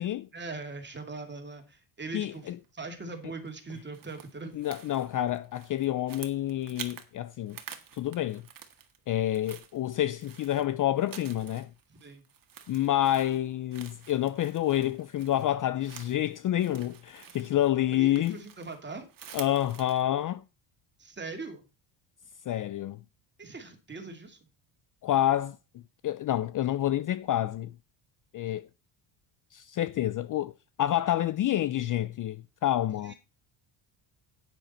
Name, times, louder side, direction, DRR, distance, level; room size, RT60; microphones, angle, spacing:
voice 1, 0.3-4.5 11.9-12.2 17.9-19.1 21.0-21.6 23.4-24.4 33.0-33.1, right 3 dB, 20° right, 2.5 m, -41 dB
voice 2, 2.1-2.6 4.5-7.6 7.9-8.4 9.1-11.7 12.7-18.4 19.3-20.4 22.5-23.0 25.0-25.6 26.0-27.7 28.3-28.7 29.5-30.5 30.8-33.1, left 13 dB, 40° left, 0.5 m, -28 dB
sound 1, 2.3-2.7 3.5-7.1 7.4-9.0 9.3-20.0, right 8 dB, 40° right, 1.8 m, -49 dB
10.5 x 9.2 x 4.3 m
cardioid pair, 110°, 50 cm